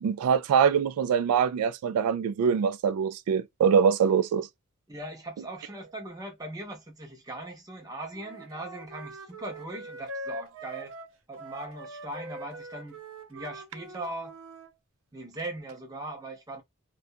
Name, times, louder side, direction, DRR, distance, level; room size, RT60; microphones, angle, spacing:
voice 1, 0.0-4.5, right 7 dB, 85° right, 0.3 m, -24 dB
voice 2, 4.9-10.9 11.3-13.0 13.3-14.3 15.1-16.6, right 1 dB, 15° right, 0.7 m, -39 dB
Wind instrument woodwind instrument, 8.1-14.7, right 1 dB, 60° right, 0.7 m, -43 dB
2.4 x 2.2 x 2.7 m
head